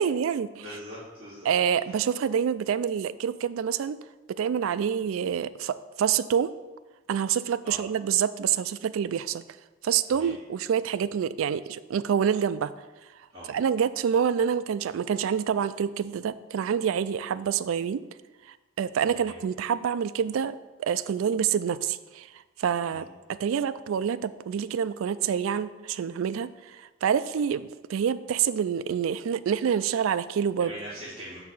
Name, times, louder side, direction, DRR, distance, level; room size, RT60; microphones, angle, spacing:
voice 1, 0.0-0.6 1.4-4.0 4.4-6.5 7.1-9.4 9.8-12.7 13.5-18.0 18.8-22.3 22.6-26.5 27.0-30.7, right 8 dB, 75° right, 14 dB, 0.3 m, -27 dB
voice 2, 0.6-1.5 7.6-7.8 10.1-10.3 13.3-13.5 19.2-19.4 22.9-23.1 30.6-31.4, equal, 20° right, -13 dB, 2.6 m, -41 dB
6.5 x 4.7 x 5.4 m, 1.2 s
head